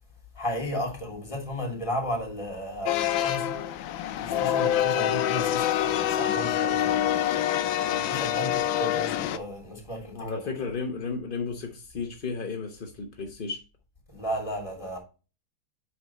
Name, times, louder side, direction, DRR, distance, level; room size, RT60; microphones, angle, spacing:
voice 1, 0.3-3.6 4.1-10.4 14.1-15.0, equal, 15° left, 2.6 m, -34 dB
sound 1, 2.9-9.4, left 11 dB, 75° left, 1.3 m, -26 dB
voice 2, 10.1-13.6, left 4 dB, 50° left, 0.6 m, -33 dB
8.1 x 4.8 x 4.1 m
omnidirectional pair, 2.1 m